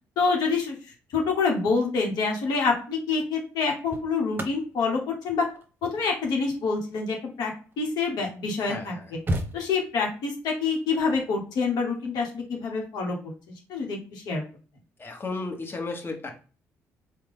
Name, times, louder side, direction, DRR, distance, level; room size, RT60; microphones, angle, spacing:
voice 1, 0.2-0.7 1.1-5.5 5.8-7.5 7.8-8.9 9.5-13.2 13.7-14.4, left 4 dB, 75° left, 1 dB, 1.0 m, -26 dB
sound 1, 2.4-2.6 3.4-8.0 8.6-8.7 8.9-10.2 11.8-12.1, right 1 dB, 30° right, 0.8 m, -36 dB
voice 2, 8.6-9.1 15.0-16.3, left 3 dB, 30° left, 3 dB, 1.2 m, -34 dB
3.5 x 2.2 x 3.5 m, 0.37 s
supercardioid pair, 60°, 7 cm